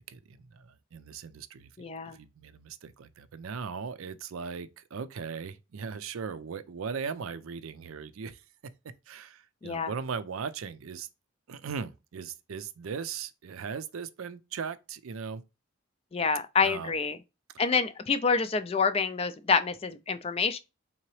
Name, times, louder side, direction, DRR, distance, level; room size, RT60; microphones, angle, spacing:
voice 1, 0.0-8.4 9.1-11.1 11.5-15.4 16.6-17.0, right 6 dB, 80° right, 0.4 m, -38 dB
voice 2, 1.8-2.2 9.6-9.9 16.1-17.2 17.6-20.6, left 5 dB, 25° left, 0.3 m, -27 dB
3.8 x 2.8 x 3.0 m
head